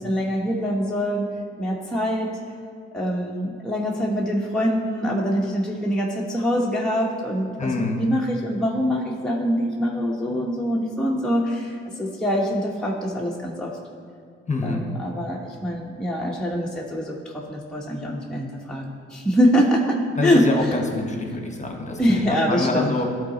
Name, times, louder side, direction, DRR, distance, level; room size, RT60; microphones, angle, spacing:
voice 1, 0.0-1.3 1.6-2.4 2.9-13.7 14.6-20.7 22.0-23.0, equal, ahead, -3 dB, 1.1 m, -24 dB
voice 2, 7.6-8.0 14.5-14.8 20.1-23.1, left 2 dB, 25° left, 2 dB, 1.4 m, -26 dB
12.0 x 4.1 x 4.0 m, 2.1 s
supercardioid pair, 55°, 30 cm